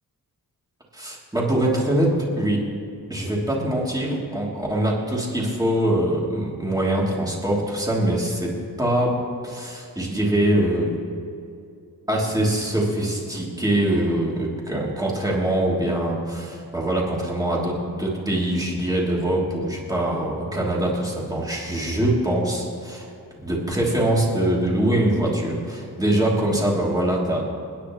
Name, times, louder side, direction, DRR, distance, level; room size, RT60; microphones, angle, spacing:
voice 1, 0.9-2.6 3.1-8.5 8.8-9.2 9.4-10.9 12.1-23.1 23.4-27.5, right 1 dB, 10° right, -4 dB, 3.2 m, -23 dB
29.5 x 10.0 x 3.2 m, 2.5 s
wide cardioid pair, 140°, 37 cm